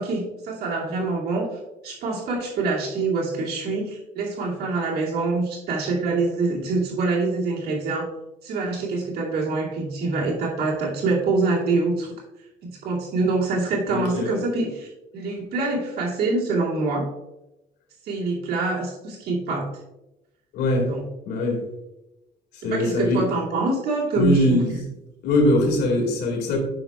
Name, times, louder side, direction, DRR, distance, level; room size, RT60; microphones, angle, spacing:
voice 1, 0.0-1.5 1.8-8.1 8.4-12.1 12.6-17.1 18.0-19.7 20.9-21.0 22.7-24.6, right 3 dB, 70° right, -4 dB, 2.5 m, -25 dB
voice 2, 13.9-14.4 20.5-20.9 21.3-21.6 22.5-23.3 24.1-24.8 25.2-26.6, left 1 dB, 80° left, 1 dB, 2.1 m, -22 dB
9.4 x 6.1 x 2.4 m, 0.95 s
cardioid pair, 110°, 17 cm